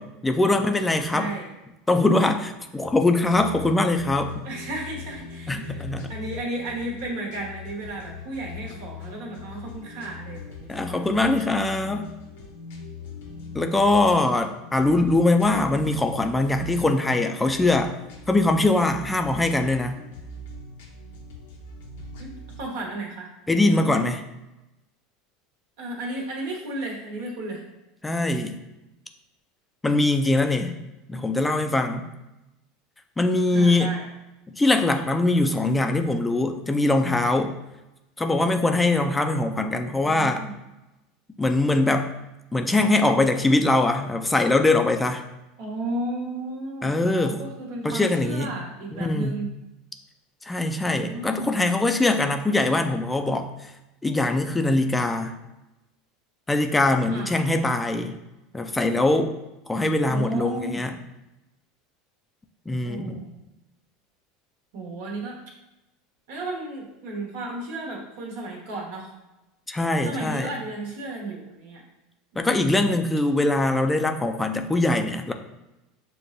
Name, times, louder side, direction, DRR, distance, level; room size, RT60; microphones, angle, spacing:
voice 1, 0.0-1.3 1.9-4.4 5.5-6.1 10.7-12.1 13.5-18.0 18.3-20.0 23.5-24.2 28.0-28.6 29.8-30.7 31.1-32.1 33.2-33.9 34.5-37.6 38.2-40.5 41.4-42.1 42.5-45.2 46.8-47.4 47.8-48.5 48.9-49.4 50.4-53.7 54.0-55.4 56.5-58.2 58.5-59.3 59.7-60.9 62.7-63.3 69.7-70.5 72.4-75.3, left 2 dB, 10° left, 6 dB, 0.4 m, -22 dB
voice 2, 1.1-1.5 4.4-11.0 22.2-23.3 25.8-27.6 33.5-34.0 40.0-40.5 45.6-49.5 50.9-51.6 57.1-57.3 60.1-60.9 62.8-63.3 64.7-65.4 66.3-69.1 70.0-71.8 72.3-72.5, right 2 dB, 75° right, -2 dB, 1.2 m, -34 dB
sound 1, 3.3-22.7, left 4 dB, 80° left, 0.7 m, -41 dB
6.4 x 2.2 x 2.5 m, 0.97 s
hypercardioid pair, 100°, 0 cm